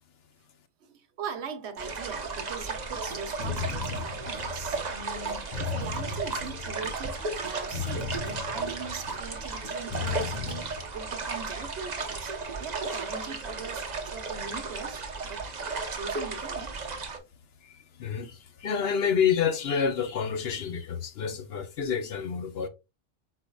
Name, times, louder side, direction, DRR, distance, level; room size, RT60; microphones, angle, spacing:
voice 1, 0.8-7.2 7.4-12.3 12.6-15.4 15.9-16.8, right 6 dB, 65° right, 1.0 m, -41 dB
sound 1, 1.8-17.2, right 4 dB, 40° right, 0.8 m, -34 dB
sound 2, 2.7-10.8, left 6 dB, 30° left, 1.7 m, -37 dB
voice 2, 17.6-22.7, left 7 dB, 60° left, 0.9 m, -28 dB
5.1 x 4.5 x 2.2 m
omnidirectional pair, 1.3 m